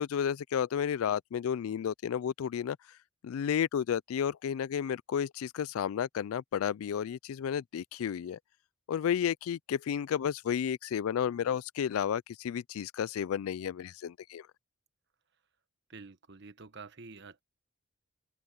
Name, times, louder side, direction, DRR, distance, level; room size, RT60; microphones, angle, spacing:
voice 1, 0.0-2.8 3.2-8.4 8.9-14.5, left 8 dB, 85° left, 0.3 m, -32 dB
voice 2, 15.9-17.4, right 4 dB, 55° right, 1.2 m, -48 dB
open air
head